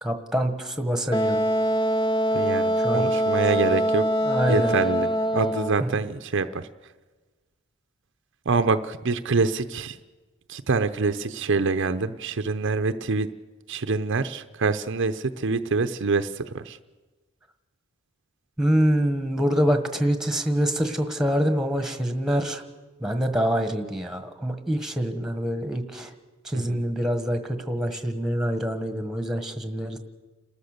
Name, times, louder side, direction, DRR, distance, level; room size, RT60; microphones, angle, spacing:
voice 1, 0.0-1.4 2.8-3.1 4.2-4.7 5.8-5.9 18.6-22.6 23.0-26.1 26.4-30.0, equal, ahead, 7 dB, 1.4 m, -25 dB
Wind instrument woodwind instrument, 1.1-5.8, equal, 25° left, 0.6 m, -23 dB
voice 2, 2.3-4.0 4.5-6.7 8.5-10.0 10.5-13.3 13.7-16.8 26.5-26.8, right 4 dB, 60° right, 9 dB, 0.7 m, -25 dB
30.0 x 13.5 x 6.7 m, 1.3 s
head